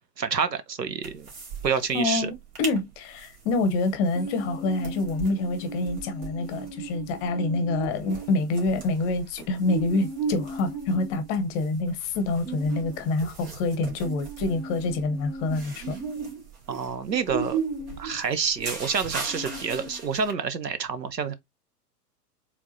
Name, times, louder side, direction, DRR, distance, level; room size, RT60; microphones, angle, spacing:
voice 1, 0.2-1.3 1.6-2.3 16.7-17.6 18.0-21.3, right 6 dB, 85° right, 0.8 m, -28 dB
sound 1, 1.0-1.7 1.9-2.0 2.4-2.8 3.2-20.3, right 4 dB, 60° right, 2.3 m, -36 dB
voice 2, 1.9-16.0, left 2 dB, 25° left, 0.8 m, -27 dB
4.6 x 3.6 x 2.6 m
figure-of-eight pair, 105°, 49 cm